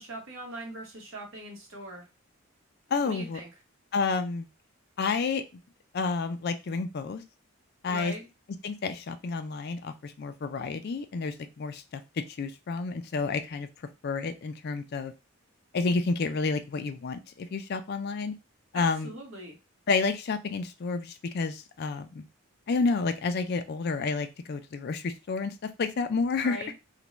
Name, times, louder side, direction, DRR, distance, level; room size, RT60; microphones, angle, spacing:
voice 1, 0.0-2.1 3.0-3.5 7.9-8.3 18.7-19.6 26.4-26.7, right 1 dB, 60° right, 1 dB, 0.9 m, -40 dB
voice 2, 2.9-3.4 3.9-4.5 5.0-5.4 5.9-7.2 7.8-8.1 8.6-12.0 12.4-13.7 14.0-15.1 15.7-18.3 18.7-19.1 19.9-22.3 22.7-25.5 25.8-26.6, left 4 dB, 45° left, 9 dB, 0.3 m, -30 dB
2.5 x 2.1 x 3.0 m, 0.26 s
head